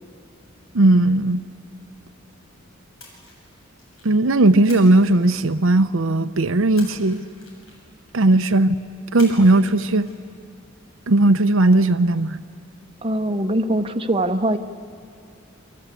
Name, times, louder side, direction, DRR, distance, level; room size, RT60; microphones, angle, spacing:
voice 1, 0.7-1.4 4.0-7.2 8.1-8.8 9.1-10.1 11.1-12.4, right 2 dB, 75° right, 8 dB, 0.8 m, -17 dB
Splash splatter, 3.0-4.2 4.7-5.9 6.8-8.0 9.2-9.7 9.9-10.2, left 2 dB, 80° left, 7.7 m, -44 dB
voice 2, 13.0-14.6, right 1 dB, 25° right, 6 dB, 1.0 m, -22 dB
28.0 x 25.0 x 8.4 m, 2.4 s
head